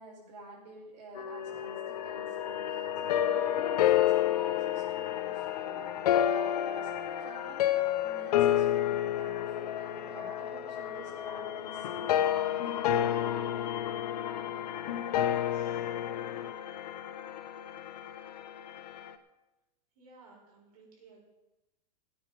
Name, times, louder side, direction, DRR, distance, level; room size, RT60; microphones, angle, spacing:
voice 1, 0.0-6.9 7.2-12.7, right 3 dB, 90° right, -8 dB, 4.9 m, -51 dB
sound 1, 1.1-19.2, left 10 dB, 80° left, 1.3 m, -38 dB
sound 2, 3.1-16.5, left 11 dB, 65° left, 0.9 m, -30 dB
voice 2, 15.1-15.9 19.9-21.2, right 3 dB, 60° right, -2 dB, 6.4 m, -58 dB
17.0 x 8.8 x 5.5 m, 0.98 s
supercardioid pair, 160°, 21 cm